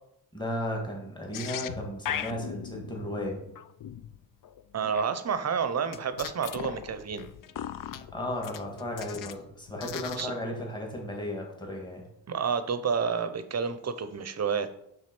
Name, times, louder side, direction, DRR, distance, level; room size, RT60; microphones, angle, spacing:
voice 1, 0.3-3.4 8.1-12.0, left 1 dB, 10° left, 0 dB, 1.8 m, -34 dB
sound 1, 1.3-5.1 5.9-9.4 9.7-10.4, left 10 dB, 50° left, 0.5 m, -39 dB
voice 2, 4.7-7.3 10.2-10.3 12.3-14.7, right 6 dB, 35° right, 11 dB, 0.7 m, -29 dB
6.2 x 3.8 x 6.0 m, 0.76 s
cardioid pair, 95°, 44 cm